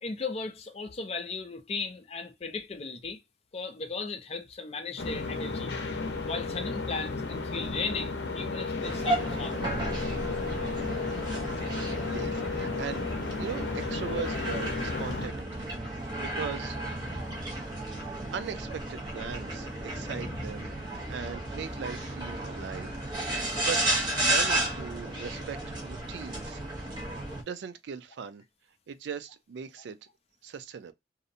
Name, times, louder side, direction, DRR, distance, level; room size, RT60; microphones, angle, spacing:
voice 1, 0.0-3.2 3.5-5.7 6.3-9.7, left 4 dB, 35° left, 0.4 m, -36 dB
sound 1, 5.0-15.3, left 3 dB, 80° left, 0.6 m, -33 dB
sound 2, 8.8-27.4, right 1 dB, 25° right, 0.6 m, -33 dB
voice 2, 11.7-13.0 13.4-16.8 18.3-20.7 21.1-23.0 23.4-23.8 24.2-26.7 27.4-28.4 28.9-30.0 30.4-30.9, right 6 dB, 80° right, 0.3 m, -39 dB
sound 3, 14.1-16.0 16.6-18.3 19.8-21.6 24.9-25.7 26.1-26.3 27.0-27.4, equal, 20° left, 0.9 m, -46 dB
2.6 x 2.0 x 2.5 m
head